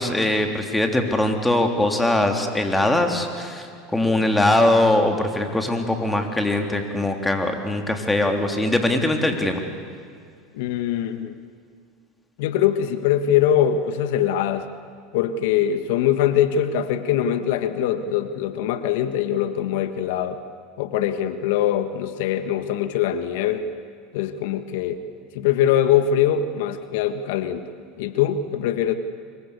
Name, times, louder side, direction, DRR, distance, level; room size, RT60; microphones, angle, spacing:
voice 1, 0.0-9.6, left 1 dB, 10° left, 4 dB, 3.5 m, -21 dB
voice 2, 10.5-11.3 12.4-14.7 15.1-20.4 20.8-23.7 24.1-25.0 25.3-27.6 28.0-28.9, left 10 dB, 70° left, 10 dB, 1.6 m, -22 dB
25.5 x 23.0 x 8.3 m, 2.2 s
hypercardioid pair, 100°, 0 cm